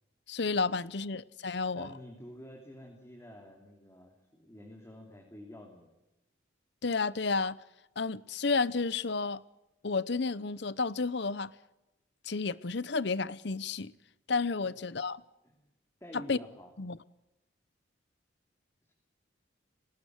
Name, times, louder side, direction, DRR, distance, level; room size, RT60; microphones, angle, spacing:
voice 1, 0.3-1.9 6.8-7.6 8.0-9.4 9.8-11.5 12.2-13.9 14.3-15.2 16.1-16.4 16.8-17.0, left 4 dB, 60° left, 0.8 m, -31 dB
voice 2, 1.7-5.9 14.6-14.7 15.4-15.7 16.0-16.7 18.9-19.0, equal, 15° left, 3.1 m, -49 dB
20.0 x 18.5 x 9.5 m
head